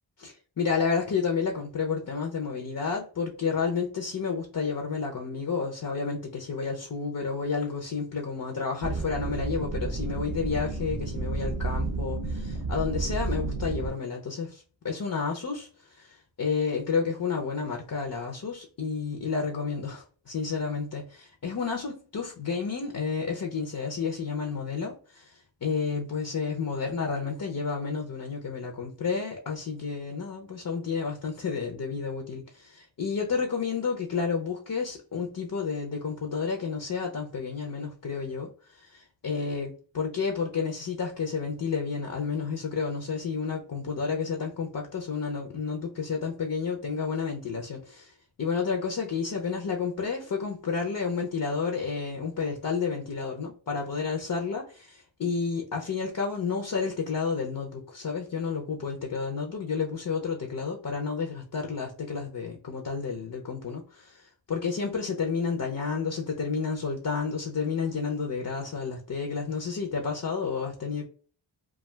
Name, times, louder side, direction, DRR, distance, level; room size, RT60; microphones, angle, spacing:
voice 1, 0.2-48.1 48.4-71.1, left 5 dB, 45° left, 2 dB, 0.6 m, -31 dB
sound 1, 8.8-13.9, right 3 dB, 50° right, 0.5 m, -31 dB
2.3 x 2.3 x 3.2 m, 0.41 s
cardioid pair, 40°, 48 cm